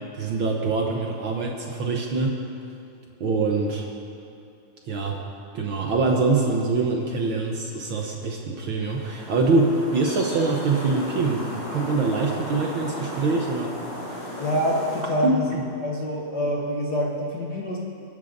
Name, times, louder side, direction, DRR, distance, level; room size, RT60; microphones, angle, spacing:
voice 1, 0.2-2.4 3.2-3.8 4.8-5.2 5.5-13.7 14.0-14.3 15.2-15.6, right 3 dB, 65° right, 0 dB, 1.3 m, -24 dB
sound 1, 8.8-15.0, left 1 dB, 35° left, 4.4 m, -35 dB
voice 2, 14.4-15.6 15.8-17.8, equal, 60° left, -2 dB, 1.0 m, -26 dB
22.5 x 11.5 x 4.0 m, 2.6 s
omnidirectional pair, 3.6 m